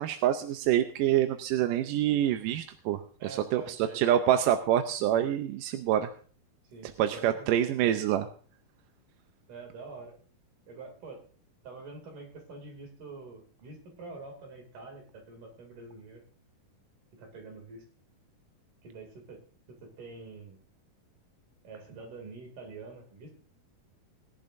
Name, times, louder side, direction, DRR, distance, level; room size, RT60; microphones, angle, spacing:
voice 1, 0.0-6.1 7.0-8.3, right 11 dB, 75° right, 8 dB, 2.1 m, -26 dB
voice 2, 3.2-4.0 6.7-7.5 9.5-10.2 10.7-11.2 11.6-16.2 17.2-17.8 18.8-19.4 19.7-20.6 21.6-23.3, right 3 dB, 60° right, 2 dB, 4.1 m, -46 dB
20.5 x 10.5 x 2.6 m, 0.41 s
omnidirectional pair, 4.2 m